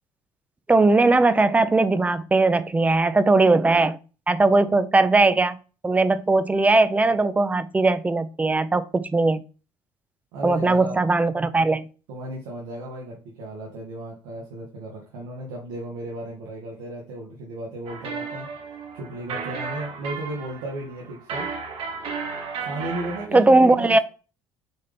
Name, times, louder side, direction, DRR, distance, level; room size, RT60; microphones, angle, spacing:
voice 1, 0.7-4.0 4.3-5.6 5.8-9.4 10.4-11.9 23.3-24.0, right 3 dB, 15° right, 0.4 m, -19 dB
voice 2, 10.3-11.1 12.1-18.5 18.9-21.5 22.6-24.0, right 1 dB, 90° right, 1.2 m, -34 dB
sound 1, 17.9-23.3, right 5 dB, 60° right, 1.0 m, -34 dB
4.2 x 3.6 x 3.3 m
supercardioid pair, 80°, 11 cm